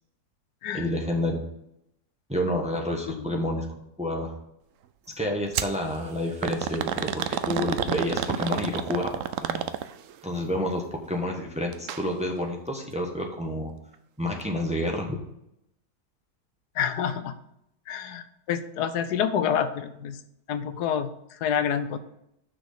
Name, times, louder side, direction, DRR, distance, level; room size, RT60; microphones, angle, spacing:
voice 1, 0.7-1.4 2.3-3.7 4.0-4.3 5.2-9.6 10.2-10.8 11.1-13.7 14.2-15.2, left 1 dB, 5° right, 1 dB, 1.1 m, -29 dB
sound 1, 5.5-5.8 6.4-10.1 11.7-12.0 12.4-12.5 13.3-13.4, right 10 dB, 65° right, 0.8 m, -29 dB
voice 2, 16.8-17.3 17.9-20.2 20.5-21.1 21.4-22.0, left 8 dB, 80° left, 10 dB, 1.2 m, -28 dB
6.1 x 6.1 x 6.7 m, 0.79 s
omnidirectional pair, 1.7 m